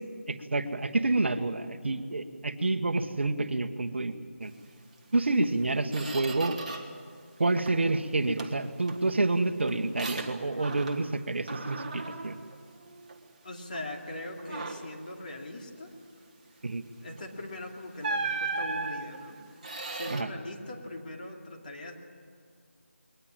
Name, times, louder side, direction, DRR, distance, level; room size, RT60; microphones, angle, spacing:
voice 1, 0.3-4.1 4.4-4.5 5.1-6.6 7.4-12.4 16.6-16.8 20.1-20.3, right 2 dB, 55° right, 8 dB, 1.3 m, -28 dB
Squeak, 5.1-5.3 5.6-7.1 7.4-7.9 8.4-11.2 11.5-13.3 13.7-13.9 14.4-15.0 17.1-17.3 18.0-20.2, right 3 dB, 30° right, 1.5 m, -37 dB
voice 2, 13.4-15.9 17.0-19.4 19.9-21.9, left 1 dB, 35° left, 0 dB, 2.7 m, -41 dB
22.0 x 19.5 x 8.8 m, 2.2 s
figure-of-eight pair, 175°, 8 cm